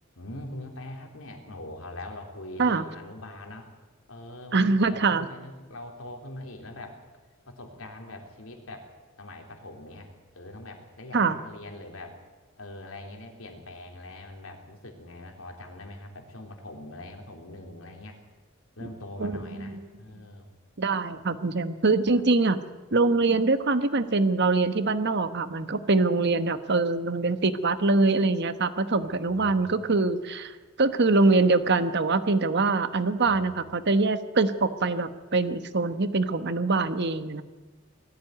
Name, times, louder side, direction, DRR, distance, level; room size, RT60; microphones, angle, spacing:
voice 1, 0.2-3.7 4.1-7.0 7.4-8.9 9.2-12.2 12.6-18.2 18.8-20.5 29.0-30.0 33.1-33.4, left 1 dB, 85° left, 3 dB, 3.5 m, -43 dB
voice 2, 4.5-5.3 11.1-11.4 19.2-19.8 20.8-22.6 22.9-30.5 30.8-37.4, right 3 dB, 55° right, 11 dB, 1.2 m, -24 dB
20.0 x 14.0 x 9.3 m, 1.3 s
head